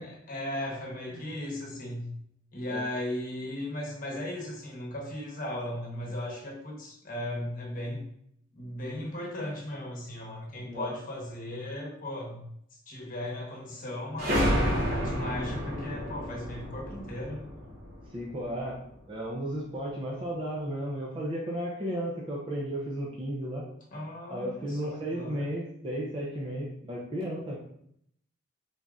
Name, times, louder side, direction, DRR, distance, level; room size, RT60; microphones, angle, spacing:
voice 1, 0.0-2.1 2.5-8.0 8.5-12.4 12.9-14.5 14.9-17.6 23.9-25.5, left 1 dB, 45° left, -2 dB, 1.0 m, -37 dB
sound 1, 14.2-18.6, equal, 50° right, 0.9 m, -30 dB
voice 2, 18.1-18.8 19.1-23.6 24.3-27.6, equal, 25° right, -3 dB, 0.5 m, -34 dB
4.0 x 3.6 x 2.4 m, 0.71 s
head